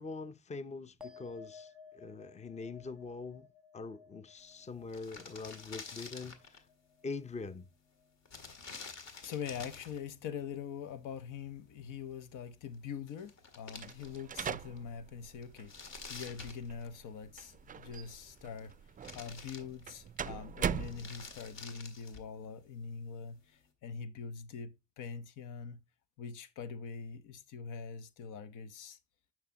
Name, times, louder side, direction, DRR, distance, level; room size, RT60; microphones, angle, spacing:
voice 1, 0.0-3.5 3.7-6.6 7.0-7.6, left 4 dB, 25° left, 0.6 m, -43 dB
sound 1, 1.0-7.7 8.0-8.6, left 5 dB, ahead, 1.0 m, -57 dB
sound 2, 4.5-4.6 4.8-6.7 8.3-10.0 12.7-12.8 13.1-14.4 14.8-14.9 15.4-17.2 18.2-18.7 19.0-20.2 20.7-22.4, left 4 dB, 65° left, 1.8 m, -49 dB
voice 2, 9.2-15.7 16.1-18.7 19.1-25.8 26.2-29.0, left 6 dB, 85° left, 0.9 m, -43 dB
sound 3, 13.8-21.6, right 8 dB, 30° right, 0.3 m, -42 dB
9.1 x 5.8 x 2.8 m
cardioid pair, 90°, 30 cm